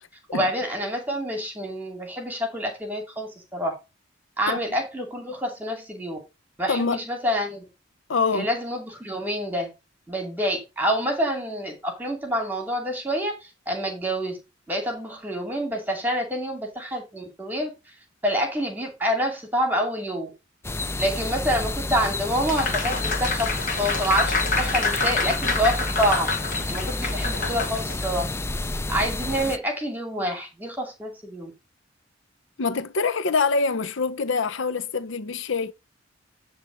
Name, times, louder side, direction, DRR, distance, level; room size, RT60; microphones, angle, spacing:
voice 1, 0.3-3.7 4.4-6.2 6.6-7.7 8.3-9.7 10.1-14.4 14.7-17.7 18.2-20.3 21.0-23.5 23.8-26.3 26.7-28.3 28.9-31.5, equal, 10° right, 2.5 m, -27 dB
voice 2, 6.7-7.0 8.1-8.5 32.6-35.7, left 4 dB, 65° left, 0.7 m, -25 dB
sound 1, 20.6-29.6, left 2 dB, 10° left, 0.4 m, -29 dB
Applause, 22.5-28.0, left 3 dB, 40° left, 2.2 m, -27 dB
10.0 x 3.6 x 6.1 m
head